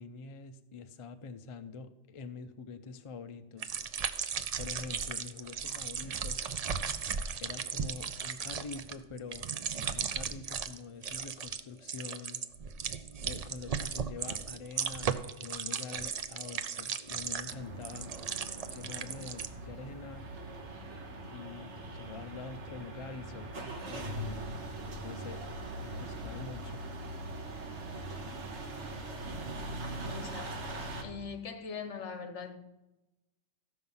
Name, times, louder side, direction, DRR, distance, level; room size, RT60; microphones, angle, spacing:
voice 1, 0.0-3.7 4.6-6.4 7.4-9.5 10.0-12.4 13.2-18.2 18.7-20.3 21.2-24.4 25.0-25.4 25.8-26.8, left 4 dB, 45° left, 0.4 m, -45 dB
sound 1, 3.6-10.8 11.0-11.6 11.8-19.5, right 6 dB, 80° right, 0.3 m, -36 dB
sound 2, 17.5-31.0, right 1 dB, 60° right, 1.5 m, -41 dB
voice 2, 30.0-30.6 31.0-32.6, left 5 dB, 65° left, 1.3 m, -41 dB
14.5 x 5.8 x 5.5 m
omnidirectional pair, 1.3 m